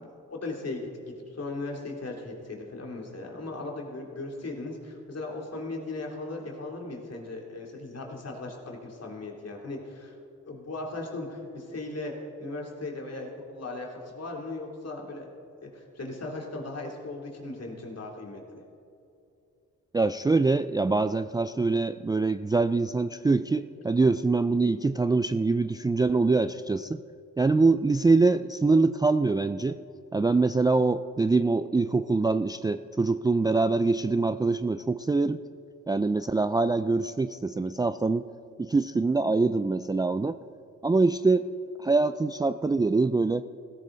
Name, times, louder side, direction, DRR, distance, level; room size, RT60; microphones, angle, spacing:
voice 1, 0.0-10.1 10.4-12.1 12.4-15.3 15.6-18.6, left 2 dB, 50° left, 0 dB, 3.1 m, -37 dB
voice 2, 19.9-27.0 27.4-29.8 30.1-35.4 35.9-38.3 38.6-40.4 40.8-41.5 41.8-43.4, right 3 dB, 10° right, 11 dB, 0.3 m, -24 dB
16.0 x 14.5 x 4.0 m, 2.6 s
supercardioid pair, 55°, 33 cm